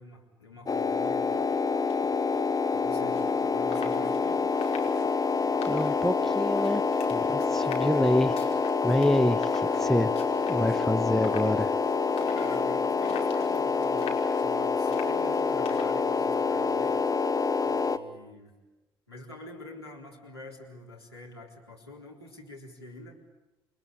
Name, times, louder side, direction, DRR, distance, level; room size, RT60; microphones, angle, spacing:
voice 1, 0.0-1.5 2.3-2.4 2.7-4.5 12.3-14.1 14.4-17.0 17.6-18.5 19.1-23.3, left 1 dB, 90° left, -3 dB, 4.0 m, -46 dB
sound 1, 0.7-18.0, left 4 dB, 30° left, 1.5 m, -27 dB
sound 2, 1.1-17.1, left 6 dB, 50° left, 5.4 m, -46 dB
voice 2, 5.7-6.8 7.1-8.4 8.8-10.1 10.5-11.7, left 1 dB, 5° left, 17 dB, 0.9 m, -26 dB
29.5 x 23.0 x 8.7 m, 1.1 s
figure-of-eight pair, 50°, 13 cm